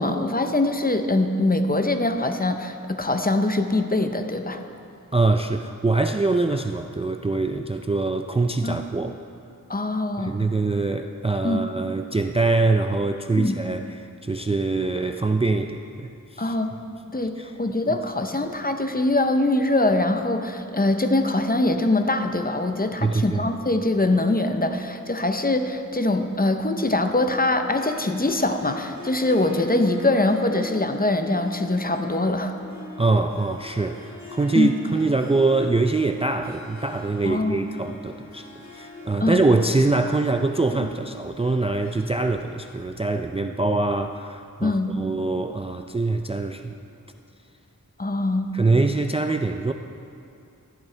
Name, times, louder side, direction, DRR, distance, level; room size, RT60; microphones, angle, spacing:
voice 1, 0.0-4.6 8.6-8.8 9.7-10.3 11.4-11.6 13.4-13.6 16.4-16.7 17.1-32.5 34.5-34.7 37.3-37.7 39.2-39.4 44.6-44.9 48.0-48.5, left 2 dB, 25° left, 6 dB, 0.7 m, -23 dB
voice 2, 5.1-9.2 10.2-13.9 14.2-16.5 17.4-17.5 23.0-23.4 33.0-46.8 48.5-49.7, right 3 dB, 20° right, 6 dB, 0.3 m, -24 dB
Harp, 27.6-44.1, left 1 dB, 55° left, 2.6 m, -43 dB
14.0 x 11.5 x 3.3 m, 2.5 s
wide cardioid pair, 65°, 33 cm